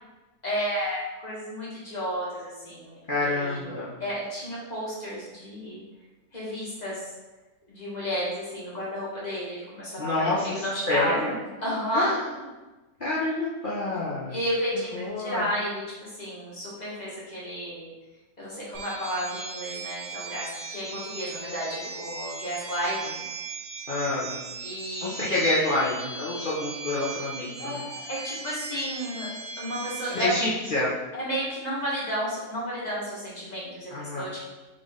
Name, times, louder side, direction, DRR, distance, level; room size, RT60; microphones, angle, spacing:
voice 1, 0.4-3.7 4.0-5.8 6.3-7.1 7.7-11.1 11.6-12.1 14.3-17.9 18.4-23.2 24.6-25.1 27.6-29.3 29.6-30.3 31.1-34.4, equal, 30° left, -7 dB, 1.2 m, -32 dB
voice 2, 3.1-4.0 10.0-11.4 11.9-12.4 13.0-14.4 14.9-15.5 23.9-24.4 25.0-27.8 30.1-30.9 33.9-34.4, left 2 dB, 50° left, -8 dB, 0.6 m, -28 dB
sound 1, 18.7-30.3, right 4 dB, 60° right, 1.1 m, -38 dB
3.7 x 3.7 x 3.5 m, 1.1 s
omnidirectional pair, 1.7 m